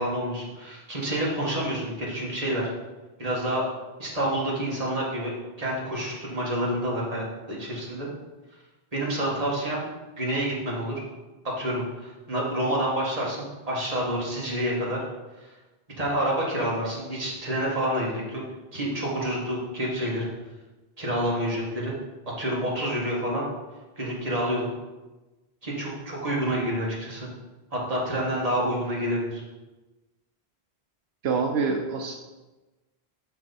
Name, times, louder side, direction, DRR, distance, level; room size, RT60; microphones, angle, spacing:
voice 1, 0.0-2.7 3.2-3.6 4.0-5.3 5.6-8.1 8.9-9.8 10.2-11.0 11.6-15.0 15.4-15.5 16.0-18.4 18.7-20.3 21.0-21.9 22.4-23.5 24.0-24.7 25.6-27.3 27.7-29.4, right 1 dB, 35° right, -5 dB, 1.9 m, -28 dB
voice 2, 31.2-32.1, right 5 dB, 80° right, 3 dB, 0.9 m, -26 dB
6.3 x 6.1 x 4.2 m, 1.1 s
omnidirectional pair, 1.1 m